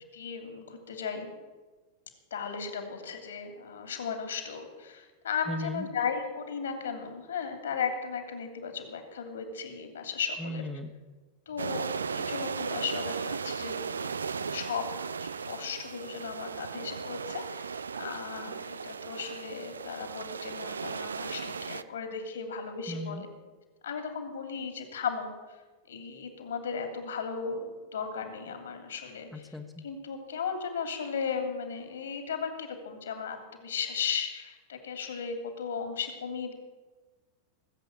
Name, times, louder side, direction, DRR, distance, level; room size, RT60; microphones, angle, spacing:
voice 1, 0.1-1.3 2.3-10.6 11.5-14.8 15.2-23.3 23.8-25.6 25.9-29.5 29.8-36.5, left 6 dB, 65° left, 6 dB, 2.8 m, -36 dB
voice 2, 5.5-5.9 10.4-10.9 22.9-23.2 29.3-29.8, left 1 dB, 5° left, 3 dB, 1.3 m, -36 dB
sound 1, 11.6-21.8, right 5 dB, 70° right, 0.4 m, -36 dB
19.0 x 8.1 x 8.7 m, 1.3 s
figure-of-eight pair, 90°, 0 cm